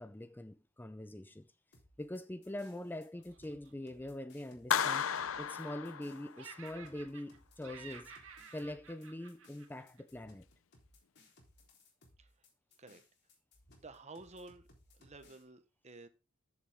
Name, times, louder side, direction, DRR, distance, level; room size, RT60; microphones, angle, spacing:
voice 1, 0.0-1.5 2.0-5.1 5.4-8.1 8.5-10.4, left 1 dB, 10° left, 0.5 m, -44 dB
sound 1, 1.7-15.4, left 2 dB, 55° left, 3.9 m, -64 dB
Laughter, 3.2-4.4 4.7-6.1 6.3-7.4 7.6-10.2, right 6 dB, 85° right, 1.9 m, -54 dB
Clapping, 4.7-6.6, left 8 dB, 85° left, 0.6 m, -34 dB
voice 2, 13.8-14.6 14.9-16.1, right 3 dB, 35° right, 1.1 m, -52 dB
14.0 x 7.2 x 3.6 m
head